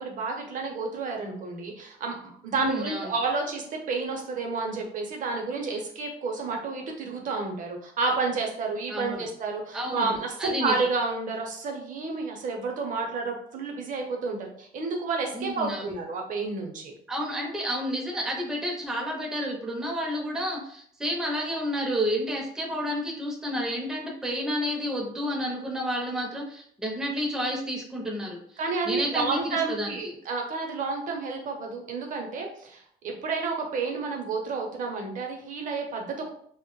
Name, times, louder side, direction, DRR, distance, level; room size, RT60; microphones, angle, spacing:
voice 1, 0.0-16.9 28.6-36.3, right 4 dB, 50° right, 2 dB, 0.6 m, -30 dB
voice 2, 2.5-3.1 8.9-9.2 9.7-10.1 10.4-10.7 15.3-15.9 17.1-28.6 28.8-30.1, equal, 5° right, -1 dB, 0.5 m, -30 dB
2.1 x 2.1 x 3.0 m, 0.64 s
cardioid pair, 110°, 17 cm